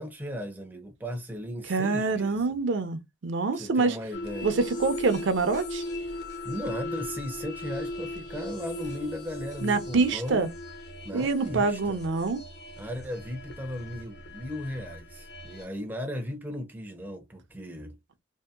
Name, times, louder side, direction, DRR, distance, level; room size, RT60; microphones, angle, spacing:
voice 1, 0.0-2.6 3.5-4.6 6.4-10.5 11.0-12.0 12.8-18.0, equal, 10° right, 0.4 m, -36 dB
voice 2, 1.7-4.0 4.4-5.8 9.6-10.5 11.1-12.4, right 4 dB, 65° right, 0.5 m, -26 dB
sound 1, 4.1-15.7, left 1 dB, 55° left, 0.6 m, -38 dB
2.7 x 2.5 x 2.3 m
head